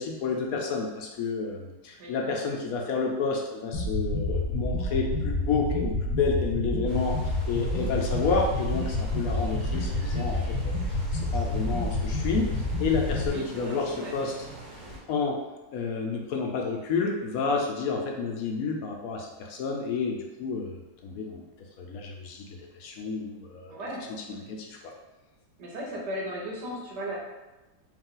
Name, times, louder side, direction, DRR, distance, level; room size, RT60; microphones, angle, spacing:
voice 1, 0.0-14.3 15.1-15.4 15.7-20.7 21.0-23.8 24.1-24.9, left 4 dB, 70° left, 1 dB, 1.0 m, -30 dB
sound 1, 3.7-13.3, left 2 dB, 85° left, 1.2 m, -29 dB
sound 2, 6.9-15.0, right 2 dB, 65° right, 2.0 m, -43 dB
voice 2, 13.3-14.2 23.7-24.0 25.6-27.2, equal, 90° right, -3 dB, 1.7 m, -36 dB
4.6 x 2.6 x 3.8 m, 1.1 s
omnidirectional pair, 1.7 m